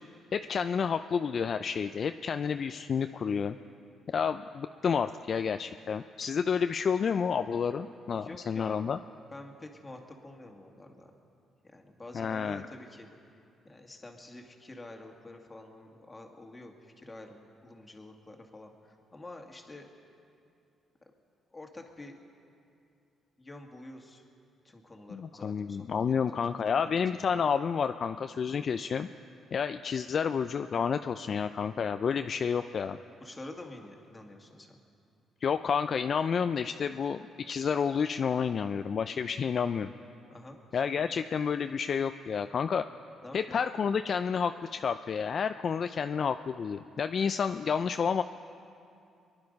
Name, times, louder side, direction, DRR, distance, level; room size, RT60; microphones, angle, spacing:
voice 1, 0.3-3.6 4.1-9.0 12.1-12.7 25.1-29.1 29.5-33.0 35.4-39.9 40.7-42.8 43.3-48.2, left 6 dB, 50° left, 9 dB, 0.4 m, -30 dB
voice 2, 8.1-8.8 9.3-11.1 11.6-13.1 13.6-19.9 21.5-22.1 23.4-24.2 24.6-25.8 26.0-26.4 26.8-26.9 33.2-34.8 40.3-41.1 43.2-43.6, left 2 dB, 20° left, 2 dB, 1.9 m, -48 dB
23.5 x 10.5 x 5.3 m, 2.5 s
cardioid pair, 90°, 0 cm